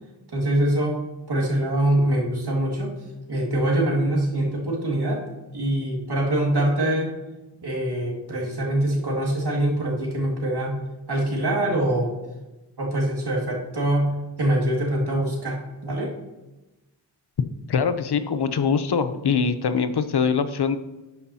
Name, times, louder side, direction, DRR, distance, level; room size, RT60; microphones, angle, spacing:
voice 1, 0.3-1.0 1.3-2.9 3.3-5.2 5.5-7.1 7.6-10.8 11.1-12.1 12.8-16.1, right 1 dB, 60° right, -1 dB, 2.2 m, -24 dB
voice 2, 17.7-20.8, left 6 dB, 65° left, 11 dB, 0.7 m, -23 dB
12.0 x 8.6 x 2.8 m, 1.1 s
cardioid pair, 50°, 43 cm